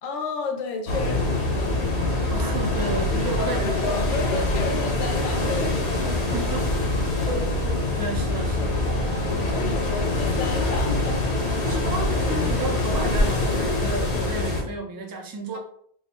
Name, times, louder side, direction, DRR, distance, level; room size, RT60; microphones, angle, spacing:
voice 1, 0.0-1.8 2.3-2.6 3.4-6.5 7.1-7.6 9.5-11.2, left 4 dB, 90° left, 2 dB, 0.9 m, -32 dB
sound 1, 0.9-14.6, left 2 dB, 70° left, 1.1 m, -24 dB
voice 2, 2.3-3.8 6.0-6.7 7.2-9.5 11.6-15.6, right 2 dB, 30° right, 2 dB, 0.4 m, -32 dB
3.5 x 2.0 x 4.2 m, 0.62 s
omnidirectional pair, 1.2 m